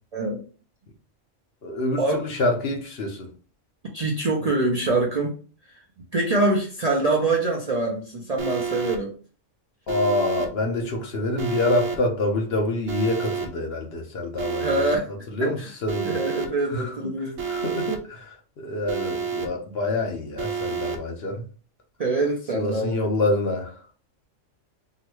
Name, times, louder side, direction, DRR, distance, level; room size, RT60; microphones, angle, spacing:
voice 1, 0.1-0.4 2.0-2.2 3.9-5.3 6.1-9.1 14.6-15.1 15.4-15.7 16.0-17.4 22.0-23.0, right 2 dB, 45° right, 0.5 m, -24 dB
voice 2, 1.6-3.3 9.9-14.8 15.3-16.2 16.7-16.9 17.5-18.4 18.6-21.4 22.5-23.8, left 2 dB, 60° left, 0.9 m, -26 dB
Alarm, 8.4-9.0 9.9-10.5 11.4-12.0 12.9-13.5 14.4-15.0 15.9-16.5 17.4-18.0 18.9-19.5 20.4-21.0, right 6 dB, 85° right, 1.0 m, -29 dB
3.8 x 2.1 x 3.0 m
omnidirectional pair, 1.3 m